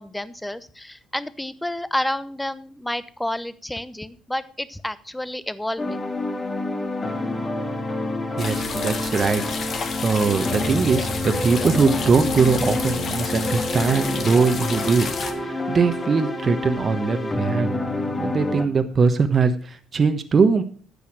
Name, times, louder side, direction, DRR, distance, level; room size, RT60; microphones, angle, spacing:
voice 1, 0.0-6.0, left 1 dB, 10° left, 15 dB, 0.9 m, -30 dB
sound 1, 5.8-18.7, left 2 dB, 30° left, 2.0 m, -28 dB
sound 2, 8.4-15.3, left 5 dB, 50° left, 1.6 m, -31 dB
voice 2, 8.4-15.1 15.4-17.8 18.2-20.6, right 5 dB, 40° right, 9 dB, 1.1 m, -21 dB
10.0 x 7.0 x 6.2 m, 0.43 s
hypercardioid pair, 55°, 0 cm